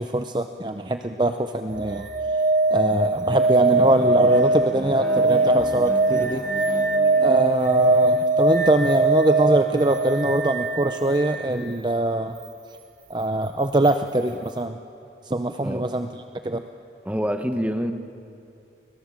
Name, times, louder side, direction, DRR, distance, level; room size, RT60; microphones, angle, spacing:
voice 1, 0.0-2.1 2.7-6.5 7.2-12.4 13.1-14.8 15.2-16.1 16.4-16.6, right 1 dB, 25° right, 7 dB, 0.6 m, -23 dB
sound 1, 1.7-11.5 13.8-13.9, right 2 dB, 45° right, 1.7 m, -21 dB
Bowed string instrument, 3.7-8.6, left 1 dB, 10° left, 0.7 m, -37 dB
voice 2, 15.6-15.9 17.0-17.9, equal, 10° right, 7 dB, 1.2 m, -26 dB
29.5 x 21.5 x 7.4 m, 2.6 s
head